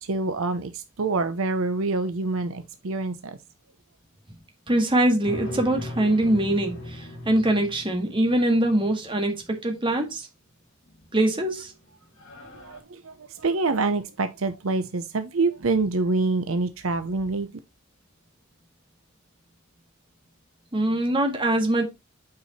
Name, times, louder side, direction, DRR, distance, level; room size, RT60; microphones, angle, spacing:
voice 1, 0.0-3.4 12.5-17.5, right 3 dB, 70° right, 0.7 m, -26 dB
voice 2, 4.7-10.3 11.1-11.7 20.7-21.8, right 1 dB, 25° right, 1.9 m, -23 dB
sound 1, 5.2-9.1 11.0-11.5 11.8-11.9 12.2-12.8, left 1 dB, 60° left, 2.4 m, -39 dB
8.6 x 4.7 x 4.1 m
head